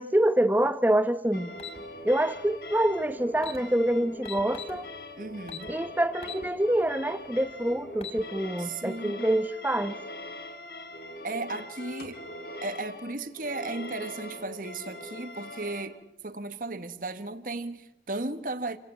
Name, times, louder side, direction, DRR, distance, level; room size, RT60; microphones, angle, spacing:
voice 1, 0.0-1.5 2.0-4.8 5.7-10.0, right 1 dB, 10° right, 0.9 m, -26 dB
sound 1, 1.3-15.8, left 1 dB, 60° left, 4.3 m, -42 dB
sound 2, 1.6-1.8 3.0-3.1 3.3-3.6 4.2-4.8 5.5-5.7 6.2-6.4 6.9-7.0 7.8-8.2, left 7 dB, 35° left, 4.7 m, -40 dB
voice 2, 5.2-5.8 8.6-9.3 11.2-12.2 12.6-16.0 16.2-18.8, right 2 dB, 50° right, 1.5 m, -35 dB
29.0 x 17.5 x 9.1 m
head